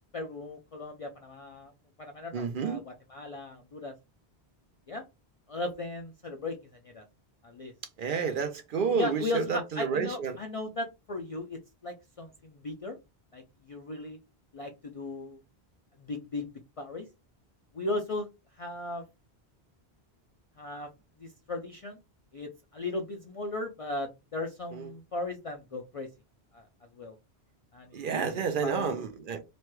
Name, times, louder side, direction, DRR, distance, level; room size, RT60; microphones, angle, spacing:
voice 1, 0.1-1.7 2.0-4.0 4.9-5.0 5.5-6.6 6.8-7.0 7.4-7.7 8.9-13.0 13.3-14.2 14.5-15.4 16.0-16.5 16.8-17.1 17.7-18.3 18.6-19.0 20.6-20.9 21.2-22.0 22.3-26.1 26.5-26.6 26.9-27.2 27.7-29.0, left 2 dB, 55° left, 0.4 m, -37 dB
voice 2, 2.3-2.8 8.0-10.3 24.7-24.8 27.9-29.4, right 6 dB, 60° right, 0.7 m, -30 dB
3.0 x 2.2 x 3.0 m
omnidirectional pair, 1.1 m